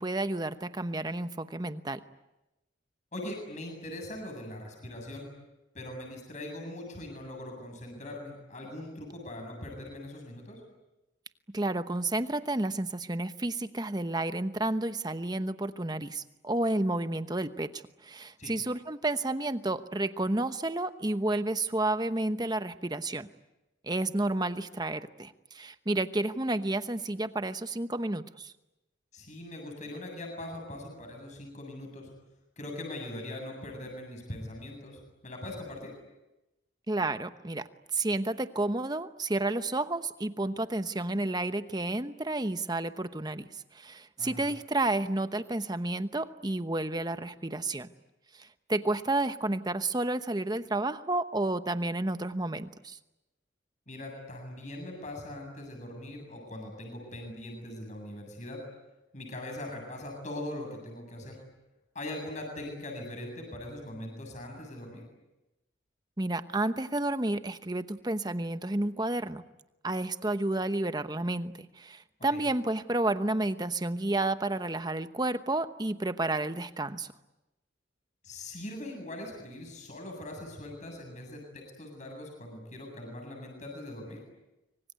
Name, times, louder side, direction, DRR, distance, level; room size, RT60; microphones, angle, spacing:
voice 1, 0.0-2.0 11.5-23.3 23.8-28.5 36.9-43.5 43.7-47.9 48.4-53.0 66.2-69.4 69.8-77.1, right 2 dB, 20° right, 11 dB, 1.0 m, -31 dB
voice 2, 3.1-5.3 5.7-10.6 18.4-18.5 29.1-32.1 32.6-35.9 44.2-44.4 53.9-58.6 59.1-61.4 61.9-65.0 72.3-72.4 78.2-84.2, left 1 dB, 40° left, 2 dB, 7.8 m, -41 dB
25.5 x 25.0 x 9.4 m, 0.98 s
head